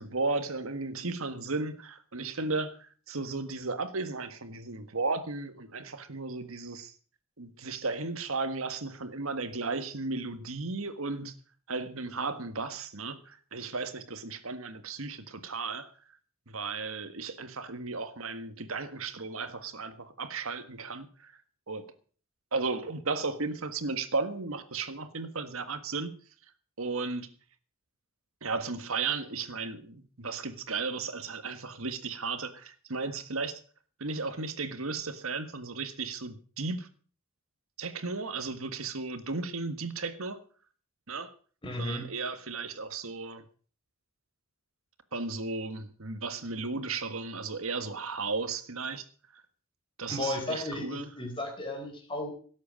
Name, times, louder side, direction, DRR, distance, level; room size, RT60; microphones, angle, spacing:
voice 1, 0.0-6.9 7.4-11.3 11.7-15.9 16.5-21.3 21.7-21.9 22.5-26.1 26.8-27.3 28.4-33.6 34.0-36.9 37.8-40.4 41.1-41.3 41.8-43.4 45.1-49.0 49.3-49.4 50.0-51.1, right 3 dB, 75° right, 1.6 m, -35 dB
voice 2, 41.6-42.1 50.1-52.3, left 2 dB, 25° left, 4.1 m, -34 dB
17.0 x 8.3 x 6.4 m
head